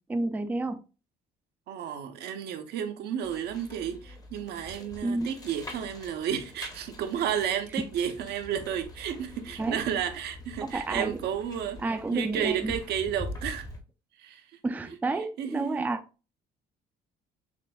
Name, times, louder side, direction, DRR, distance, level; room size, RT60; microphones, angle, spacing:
voice 1, 0.1-0.8 5.0-5.3 9.6-9.8 10.6-11.2 11.8-12.7 14.6-16.0, right 2 dB, 10° right, 0.4 m, -30 dB
voice 2, 1.7-13.7 14.2-14.5 15.4-15.9, right 8 dB, 75° right, 0.7 m, -32 dB
sound 1, 3.2-13.8, left 2 dB, 20° left, 0.8 m, -44 dB
6.0 x 2.5 x 2.2 m
cardioid pair, 110°, 17 cm